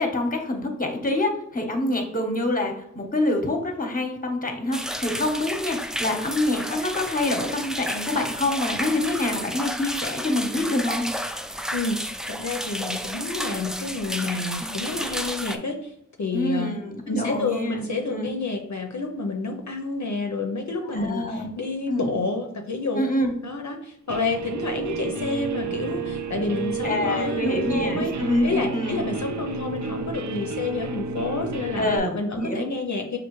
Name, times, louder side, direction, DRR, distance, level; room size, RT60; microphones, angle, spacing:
voice 1, 0.0-11.1 14.6-14.7 16.3-18.3 20.8-21.5 21.9-22.1 23.0-23.3 26.8-29.0 31.8-32.7, left 1 dB, 30° left, 3 dB, 0.9 m, -26 dB
sound 1, 4.7-15.6, equal, ahead, 0.3 m, -31 dB
voice 2, 12.3-15.9 16.2-16.7 17.1-23.0 23.4-28.1 28.4-33.2, left 3 dB, 65° left, 3 dB, 0.6 m, -29 dB
Guitar, 24.1-32.0, right 4 dB, 70° right, 0.5 m, -31 dB
5.4 x 2.5 x 3.0 m, 0.74 s
wide cardioid pair, 40°, 30 cm